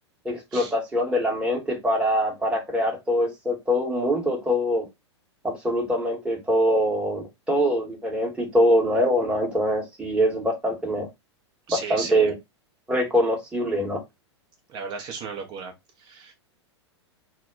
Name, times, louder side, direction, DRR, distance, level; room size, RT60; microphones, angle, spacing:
voice 1, 0.2-4.9 5.4-11.1 11.7-12.3 12.9-14.0, equal, 5° right, 0.9 m, -23 dB
voice 2, 11.7-12.3 14.7-15.7 16.0-16.3, right 5 dB, 30° right, 0.5 m, -35 dB
2.1 x 2.0 x 3.6 m
figure-of-eight pair, 100°, 15 cm